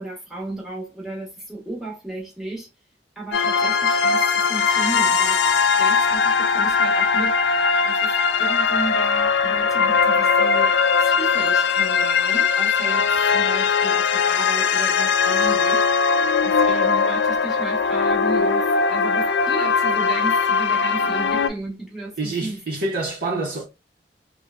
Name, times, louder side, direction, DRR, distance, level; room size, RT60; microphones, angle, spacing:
voice 1, 0.0-2.7 3.2-5.4 5.8-8.1 8.4-10.8 11.0-15.9 16.4-22.6, right 2 dB, ahead, 1.1 m, -34 dB
sound 1, 3.3-21.5, left 5 dB, 70° left, 0.3 m, -20 dB
voice 2, 22.2-23.6, right 2 dB, 55° right, 0.8 m, -26 dB
3.4 x 2.1 x 2.4 m
head